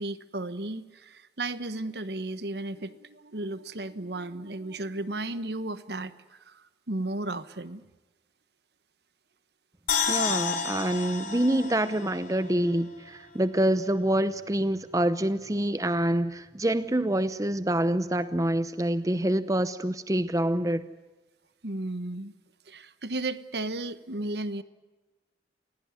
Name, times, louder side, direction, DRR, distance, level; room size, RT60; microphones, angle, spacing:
voice 1, 0.0-7.8 21.6-22.3 22.7-24.6, right 2 dB, 70° right, 1.2 m, -34 dB
sound 1, 9.9-13.1 13.4-13.5, left 6 dB, 50° left, 4.7 m, -31 dB
voice 2, 10.1-20.8, right 1 dB, 20° right, 0.8 m, -26 dB
29.0 x 17.0 x 9.7 m
head